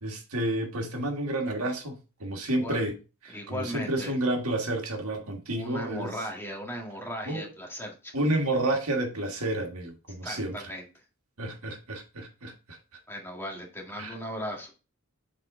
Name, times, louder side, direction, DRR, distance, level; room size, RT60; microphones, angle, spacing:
voice 1, 0.0-2.9 3.3-6.1 7.3-7.4 8.1-10.7 11.4-12.8 14.0-14.1, right 1 dB, 80° right, 1.6 m, -30 dB
voice 2, 2.4-2.8 3.3-4.2 5.5-8.1 10.2-10.9 13.1-14.7, equal, 10° left, 1.7 m, -37 dB
7.5 x 4.3 x 3.7 m
head